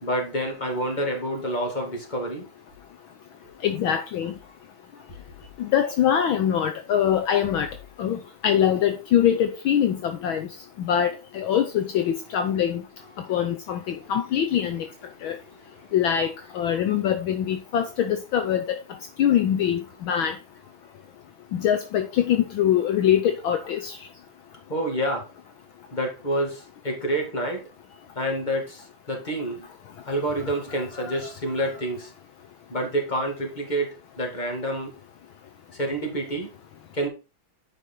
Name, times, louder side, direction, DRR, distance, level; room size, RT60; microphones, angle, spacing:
voice 1, 0.0-2.4 13.0-13.1 15.2-15.3 16.1-16.2 16.7-16.8 24.7-25.3 25.9-27.6 28.2-28.8 29.1-29.6 30.1-32.1 32.7-34.9 35.7-36.5 36.9-37.1, right 1 dB, 20° left, 2.6 m, -28 dB
voice 2, 3.6-4.3 5.6-7.7 8.0-8.2 8.4-10.0 10.2-10.5 10.9-11.1 11.3-12.8 13.3-13.8 14.1-14.8 15.2-15.3 15.9-16.3 16.5-18.6 19.2-19.8 20.1-20.3 21.6-23.8, left 9 dB, 70° left, 1.6 m, -23 dB
9.4 x 5.3 x 4.3 m
omnidirectional pair, 2.4 m